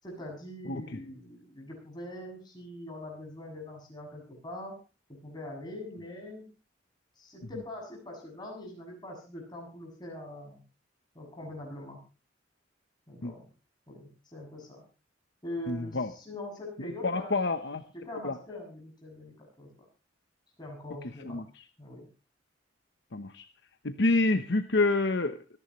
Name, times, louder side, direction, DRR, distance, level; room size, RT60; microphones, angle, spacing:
voice 1, 0.0-4.8 5.1-6.5 7.2-10.6 11.1-12.0 13.1-13.5 13.9-14.8 15.4-17.4 17.9-19.9 20.6-21.4 21.8-22.1, left 1 dB, 20° left, 0 dB, 7.7 m, -43 dB
voice 2, 15.7-16.1 16.8-17.8 18.2-18.3 21.3-21.4 23.1-23.4 23.8-25.4, left 2 dB, 60° left, 8 dB, 1.0 m, -27 dB
25.5 x 11.0 x 3.2 m, 0.33 s
head